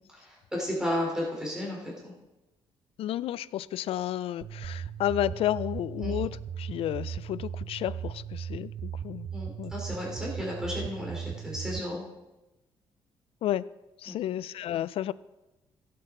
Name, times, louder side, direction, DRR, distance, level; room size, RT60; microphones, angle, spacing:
voice 1, 0.1-2.1 6.0-6.2 9.3-12.0 14.1-14.2, left 1 dB, 5° right, 3.6 m, -33 dB
voice 2, 3.0-9.3 9.6-9.7 13.4-13.7 14.0-15.1, left 12 dB, 70° left, 0.4 m, -31 dB
sound 1, 4.4-11.8, right 8 dB, 50° right, 0.5 m, -37 dB
16.0 x 8.4 x 3.8 m
cardioid pair, 125°, 10 cm